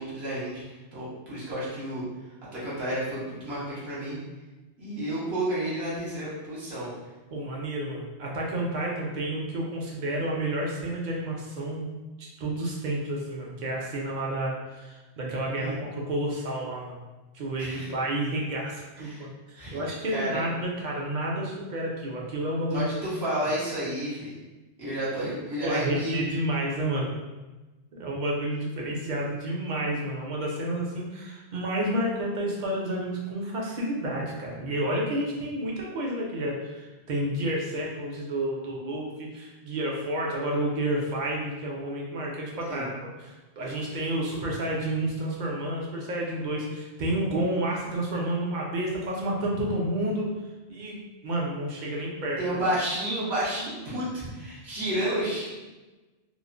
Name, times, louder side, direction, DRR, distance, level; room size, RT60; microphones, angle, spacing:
voice 1, 0.0-2.1 2.5-4.2 4.8-6.9 15.6-15.7 17.6-17.9 19.0-19.2 19.5-19.8 20.1-20.4 22.7-24.4 24.8-26.2 42.7-42.9 52.4-55.5, right 1 dB, 70° right, -9 dB, 1.2 m, -31 dB
voice 2, 7.3-11.9 12.4-17.0 17.3-22.8 23.2-23.3 25.6-27.1 27.9-50.3 50.7-52.4, right 1 dB, 55° right, -2 dB, 0.6 m, -30 dB
3.0 x 2.1 x 2.4 m, 1.2 s
omnidirectional pair, 1.1 m